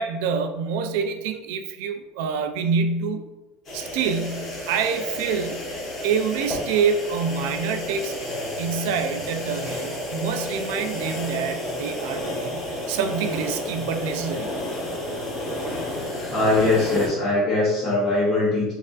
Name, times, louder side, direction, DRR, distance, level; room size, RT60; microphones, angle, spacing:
voice 1, 0.0-3.2 3.7-5.6 6.0-8.1 8.6-14.5, right 6 dB, 70° right, 7 dB, 0.4 m, -26 dB
sound 1, 3.6-17.1, left 1 dB, 30° left, 1.2 m, -31 dB
voice 2, 16.3-18.7, left 2 dB, 10° left, -12 dB, 0.9 m, -21 dB
4.2 x 2.5 x 2.5 m, 1.0 s
cardioid pair, 170°, 0 cm